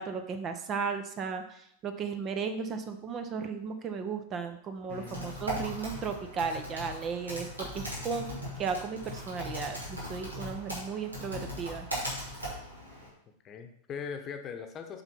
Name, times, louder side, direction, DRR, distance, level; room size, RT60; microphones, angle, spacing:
voice 1, 0.0-8.3 8.6-11.9, right 5 dB, 30° right, 8 dB, 0.8 m, -35 dB
voice 2, 4.9-5.4 13.4-15.0, left 6 dB, 30° left, 6 dB, 1.0 m, -40 dB
Typing, 4.9-13.1, equal, 80° right, 2.6 m, -39 dB
7.8 x 5.7 x 4.5 m, 0.72 s
figure-of-eight pair, 90°, 0 cm